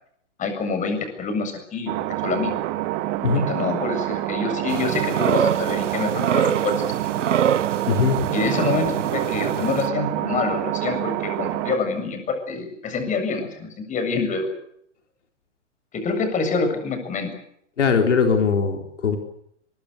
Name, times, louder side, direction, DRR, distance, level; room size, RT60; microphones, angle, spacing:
voice 1, 0.4-1.9 2.2-2.5 3.3-6.8 8.3-14.5 15.9-17.3, left 4 dB, 20° left, 6 dB, 7.4 m, -26 dB
sound 1, 1.9-11.8, right 15 dB, 30° right, 1.9 m, -27 dB
sound 2, 4.7-9.9, right 9 dB, 70° right, 1.0 m, -25 dB
voice 2, 7.9-8.3 17.8-19.2, left 5 dB, 70° left, 5 dB, 4.1 m, -20 dB
23.5 x 22.5 x 8.2 m, 0.72 s
hypercardioid pair, 120°, 37 cm